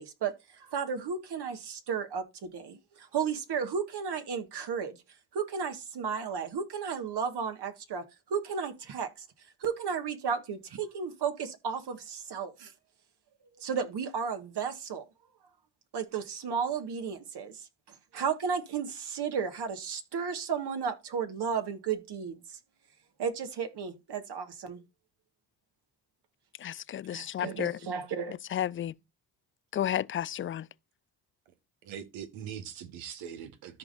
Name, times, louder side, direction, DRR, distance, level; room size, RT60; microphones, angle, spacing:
voice 1, 0.0-5.0 5.3-9.3 9.6-12.7 13.6-15.1 15.9-22.6 23.2-24.8 27.1-28.3, right 6 dB, 55° right, 1.7 m, -34 dB
voice 2, 26.6-27.7 28.5-28.9 29.7-30.7, left 11 dB, 30° left, 0.4 m, -32 dB
voice 3, 31.8-33.8, right 9 dB, 70° right, 1.4 m, -42 dB
14.0 x 5.1 x 2.6 m
hypercardioid pair, 50°, 49 cm